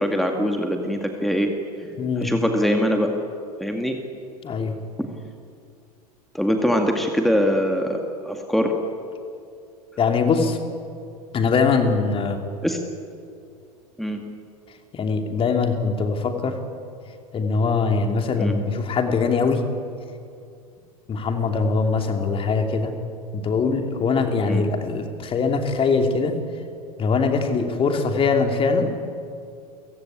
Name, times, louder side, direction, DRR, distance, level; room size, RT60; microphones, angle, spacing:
voice 1, 0.0-1.5 2.2-3.2 3.6-4.0 6.3-8.8 12.6-12.8 14.0-14.3 18.4-18.6 24.4-24.6, equal, ahead, 3 dB, 2.2 m, -23 dB
voice 2, 2.0-2.3 4.4-4.7 10.0-10.6 11.3-12.4 14.9-16.6 17.3-19.7 21.1-22.9 23.3-26.3 27.0-28.9, left 4 dB, 25° left, 5 dB, 2.8 m, -22 dB
30.0 x 16.5 x 8.6 m, 2.4 s
figure-of-eight pair, 85°, 20 cm